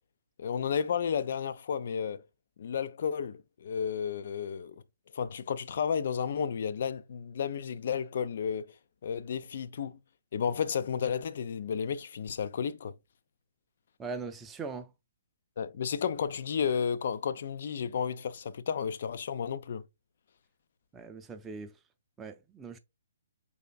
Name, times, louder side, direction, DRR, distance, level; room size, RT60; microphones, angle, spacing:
voice 1, 0.4-2.2 2.6-4.8 5.1-8.7 9.0-10.0 10.3-13.0 15.6-19.8, left 7 dB, 50° left, 0.4 m, -32 dB
voice 2, 14.0-14.9 20.9-21.7 22.2-22.8, right 4 dB, 10° right, 0.5 m, -40 dB
5.0 x 3.5 x 2.3 m
figure-of-eight pair, 130°, 0 cm